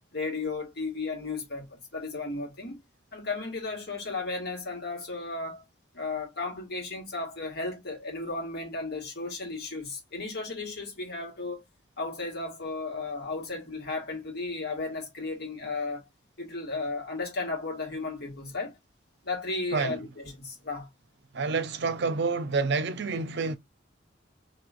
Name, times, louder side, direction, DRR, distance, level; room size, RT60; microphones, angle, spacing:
voice 1, 0.1-2.8 3.1-5.6 5.9-11.6 12.0-16.0 16.4-18.8 19.2-20.9, left 3 dB, 60° left, 1.7 m, -34 dB
voice 2, 21.3-23.6, right 4 dB, 60° right, 0.6 m, -28 dB
3.1 x 2.7 x 2.5 m
head